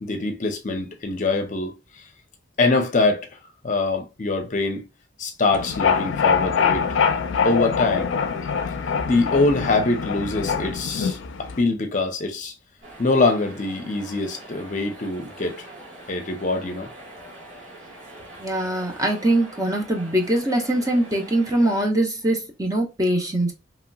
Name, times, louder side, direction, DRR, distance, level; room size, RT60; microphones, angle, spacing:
voice 1, 0.0-1.8 2.6-3.3 3.6-4.8 5.2-6.9 7.4-8.1 9.1-12.5 13.0-15.7 16.1-16.9, left 3 dB, 40° left, 0.6 m, -23 dB
sound 1, 5.5-11.6, left 6 dB, 80° left, 0.4 m, -24 dB
sound 2, 12.8-21.8, right 1 dB, 70° right, 1.5 m, -43 dB
voice 2, 18.4-23.5, right 1 dB, 20° right, 0.6 m, -22 dB
3.0 x 2.8 x 2.2 m
head